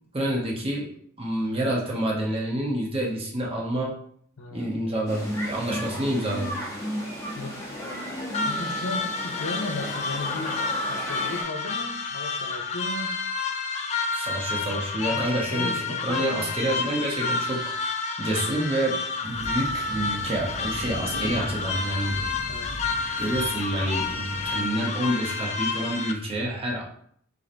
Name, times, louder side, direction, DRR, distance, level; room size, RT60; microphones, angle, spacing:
voice 1, 0.1-0.9 1.2-3.9 4.5-6.6 14.1-17.9 18.2-22.2 23.2-26.8, right 1 dB, 25° right, -2 dB, 0.9 m, -28 dB
voice 2, 4.4-4.8 7.4-7.6 8.4-13.1 15.1-16.5 22.5-22.8, left 2 dB, 75° left, 4 dB, 0.8 m, -36 dB
sound 1, 5.1-11.4, equal, 15° left, 0.9 m, -34 dB
sound 2, 8.3-26.1, left 4 dB, 30° left, 0.3 m, -30 dB
sound 3, 19.2-24.7, equal, 80° right, 0.9 m, -39 dB
3.9 x 2.7 x 4.4 m, 0.62 s
head